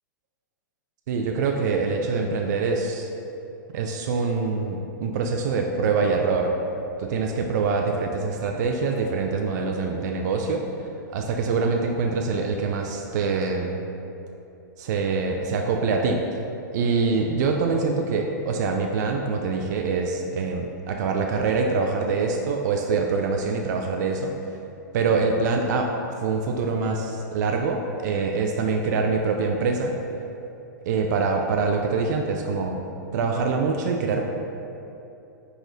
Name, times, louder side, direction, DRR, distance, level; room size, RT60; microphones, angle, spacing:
voice 1, 1.1-3.1 3.7-6.5 7.0-10.6 11.1-13.8 14.8-16.2 16.7-24.3 24.9-25.9 26.2-29.9 30.9-32.8 33.1-34.2, right 4 dB, 60° right, 2 dB, 0.4 m, -24 dB
4.7 x 3.8 x 2.6 m, 2.8 s
hypercardioid pair, 120°, 10 cm